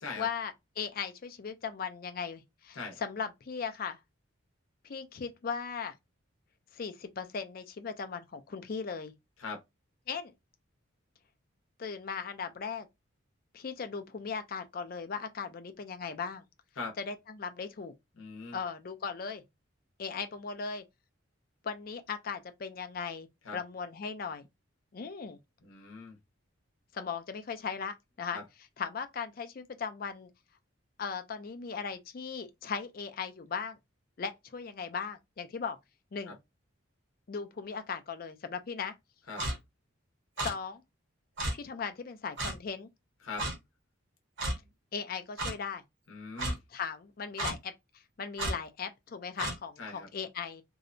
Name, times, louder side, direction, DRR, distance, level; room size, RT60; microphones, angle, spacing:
voice 1, 0.2-4.0 4.8-5.9 6.7-9.1 10.1-10.3 11.8-12.9 13.5-16.4 17.0-17.9 18.5-19.4 20.0-20.8 21.6-23.3 23.5-24.5 24.9-25.4 26.9-28.4 28.8-30.3 31.0-33.8 34.2-35.8 36.1-36.4 37.3-38.9 40.4-40.8 41.5-42.9 44.9-45.8 46.7-50.6, left 6 dB, 45° left, 0.4 m, -38 dB
voice 2, 18.2-18.6 23.4-23.6 25.6-26.2 28.3-28.4 36.3-36.4 39.3-39.4 43.2-43.5 46.1-46.6 49.8-50.1, left 4 dB, 80° left, 0.7 m, -41 dB
Clock, 39.4-39.6 40.4-40.5 41.4-41.5 42.4-42.6 43.4-43.5 44.4-44.6 45.4-45.5 46.4-46.5 47.4-47.6 48.4-48.6 49.4-49.6, right 1 dB, 65° right, 1.0 m, -32 dB
2.7 x 2.1 x 2.5 m
head